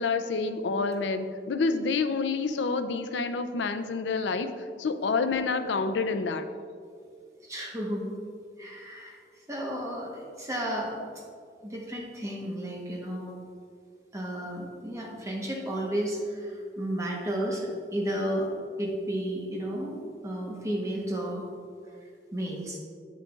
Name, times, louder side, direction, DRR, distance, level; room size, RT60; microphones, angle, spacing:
voice 1, 0.0-4.5 4.8-6.5, left 4 dB, 85° left, 9 dB, 0.4 m, -28 dB
voice 2, 7.4-8.2 8.6-11.0 11.6-13.3 14.1-18.5 18.8-21.4 22.3-22.8, equal, 15° right, -2 dB, 1.0 m, -33 dB
8.2 x 7.6 x 2.4 m, 2.2 s
head